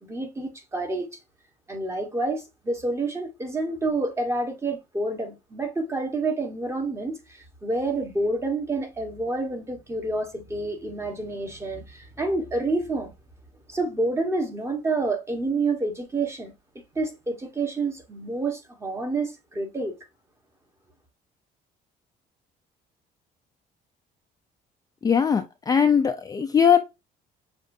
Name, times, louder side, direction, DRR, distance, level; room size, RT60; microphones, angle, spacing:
voice 1, 0.0-1.1 1.7-13.1 13.7-16.5 16.9-19.9, right 2 dB, 15° right, 1.1 m, -28 dB
voice 2, 25.0-26.8, left 7 dB, 20° left, 0.4 m, -20 dB
6.4 x 2.5 x 2.5 m
cardioid pair, 110°, 17 cm